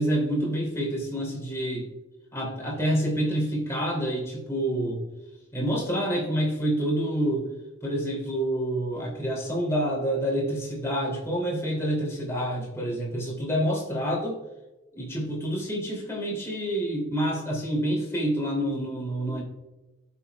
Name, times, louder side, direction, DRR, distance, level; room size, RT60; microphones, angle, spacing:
voice 1, 0.0-1.9 2.3-5.0 5.5-7.5 7.8-14.4 15.0-19.4, right 1 dB, 15° left, -3 dB, 2.7 m, -27 dB
17.0 x 5.9 x 2.3 m, 1.1 s
head